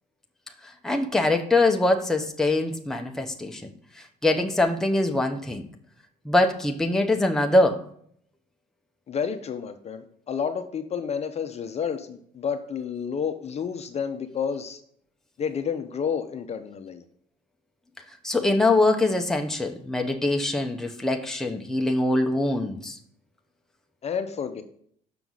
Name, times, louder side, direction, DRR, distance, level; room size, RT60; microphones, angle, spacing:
voice 1, 0.8-3.7 4.2-5.6 6.3-7.8 18.2-23.0, left 2 dB, 5° left, 3 dB, 0.7 m, -23 dB
voice 2, 9.1-14.8 15.4-17.0 24.0-24.6, left 7 dB, 40° left, 8 dB, 0.7 m, -30 dB
5.9 x 5.9 x 3.9 m, 0.63 s
cardioid pair, 110°, 17 cm